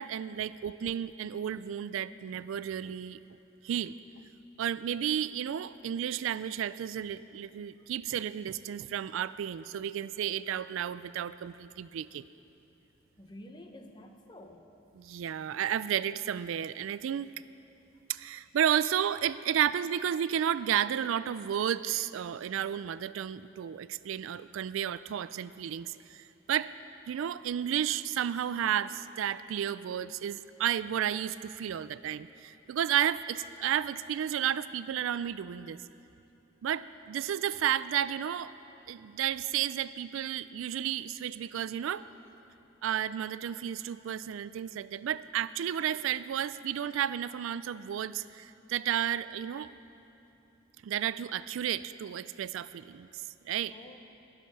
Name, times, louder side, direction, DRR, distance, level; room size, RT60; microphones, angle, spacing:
voice 1, 0.0-3.2 3.6-3.9 4.6-12.2 15.0-17.3 18.1-26.7 27.1-35.8 36.6-38.5 38.9-42.0 42.8-49.7 50.8-53.7, right 9 dB, 80° right, 16 dB, 0.3 m, -32 dB
voice 2, 13.2-14.7 53.7-54.0, left 1 dB, 20° left, 5 dB, 0.8 m, -49 dB
21.5 x 7.4 x 5.4 m, 2.8 s
head